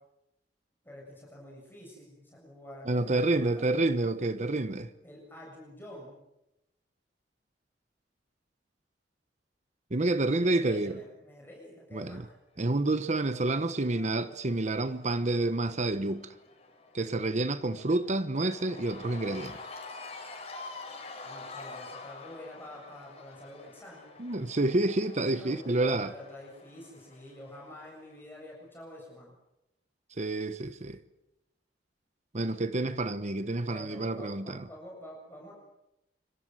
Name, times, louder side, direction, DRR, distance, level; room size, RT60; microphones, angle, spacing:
voice 1, 0.8-3.8 5.0-6.2 10.3-12.4 21.2-24.2 25.3-29.3 33.6-35.5, left 1 dB, 10° left, 7.4 m, -48 dB
voice 2, 2.9-4.9 9.9-11.0 11.9-12.3 12.6-16.3 16.9-19.6 24.2-26.1 30.2-31.0 32.3-34.7, right 2 dB, 40° right, 1.1 m, -29 dB
Cheering / Crowd, 12.8-28.1, left 3 dB, 35° left, 6.1 m, -48 dB
27.0 x 25.5 x 7.9 m
head